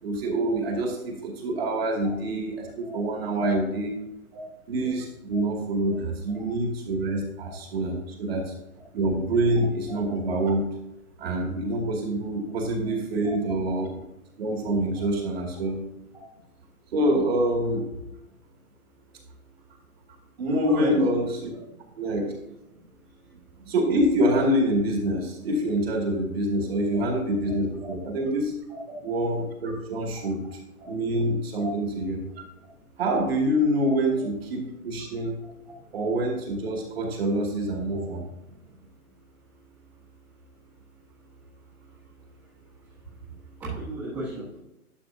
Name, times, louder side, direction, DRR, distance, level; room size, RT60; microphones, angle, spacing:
voice 1, 0.0-3.9 4.7-8.5 8.9-10.6 11.2-13.8 14.4-15.8 16.9-17.9 20.4-21.3 22.0-22.3 23.6-28.5 29.0-30.4 30.9-32.2 33.0-35.4 35.9-38.2, right 1 dB, 40° right, 1 dB, 2.5 m, -26 dB
voice 2, 13.4-13.8 16.1-16.2 20.6-21.1 21.5-21.6 26.9-27.0 27.8-27.9 28.7-29.0 30.2-30.3 30.8-30.9 31.5-31.7 33.8-33.9 37.1-37.4 38.5-38.6 43.6-44.6, right 1 dB, 10° right, -12 dB, 1.6 m, -33 dB
11.5 x 6.0 x 2.7 m, 0.89 s
hypercardioid pair, 165°, 44 cm